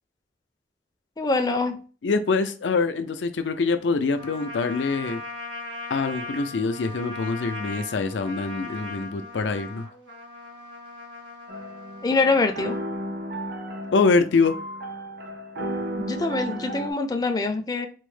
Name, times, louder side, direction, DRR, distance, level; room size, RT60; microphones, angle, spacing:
voice 1, 1.2-1.8 12.0-12.8 16.0-17.9, left 3 dB, 20° left, 0.4 m, -24 dB
voice 2, 2.0-5.2 5.9-9.9 13.9-14.6, left 4 dB, 80° left, 0.5 m, -24 dB
Trumpet, 4.2-12.8, left 2 dB, 80° right, 2.0 m, -39 dB
sound 1, 11.5-16.9, right 1 dB, 60° right, 0.6 m, -33 dB
4.3 x 2.0 x 3.2 m
head